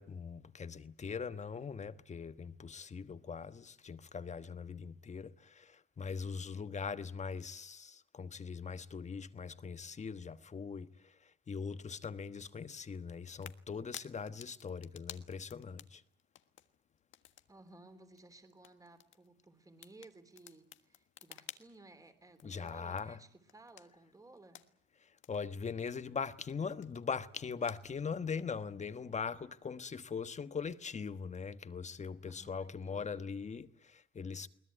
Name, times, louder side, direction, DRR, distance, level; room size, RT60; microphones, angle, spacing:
voice 1, 0.0-16.0 22.4-23.2 25.0-34.5, left 5 dB, 35° left, 1.3 m, -41 dB
sound 1, 12.0-28.6, left 11 dB, 75° left, 1.5 m, -57 dB
voice 2, 17.5-24.6 32.3-33.3, right 2 dB, 15° right, 3.3 m, -58 dB
22.0 x 19.5 x 9.6 m
cardioid pair, 90°, 20 cm